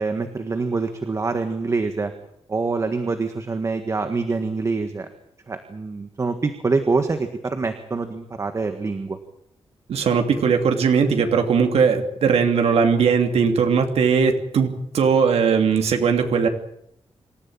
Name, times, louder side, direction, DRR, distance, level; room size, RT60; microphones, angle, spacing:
voice 1, 0.0-2.1 2.5-5.1 5.5-9.2, right 4 dB, 30° right, 8 dB, 1.6 m, -25 dB
voice 2, 9.9-16.5, right 6 dB, 85° right, 5 dB, 2.8 m, -19 dB
26.5 x 15.0 x 9.0 m, 0.74 s
wide cardioid pair, 170°, 10 cm